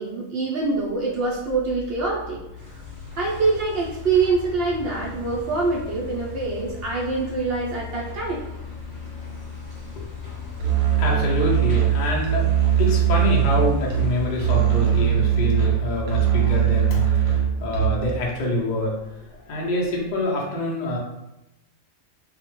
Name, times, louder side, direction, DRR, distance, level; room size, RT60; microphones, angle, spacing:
voice 1, 0.0-2.4 3.2-8.4, right 3 dB, 65° right, -5 dB, 0.6 m, -25 dB
Mechanical fan, 0.6-20.2, left 6 dB, 90° left, 1.0 m, -39 dB
sound 1, 2.5-14.9, left 2 dB, 10° right, 0.4 m, -45 dB
voice 2, 10.0-10.3 10.6-12.5 12.8-21.0, left 2 dB, 65° left, -2 dB, 0.4 m, -26 dB
Musical instrument, 10.6-18.2, right 10 dB, 85° right, 1.0 m, -21 dB
2.2 x 2.1 x 2.9 m, 0.91 s
omnidirectional pair, 1.4 m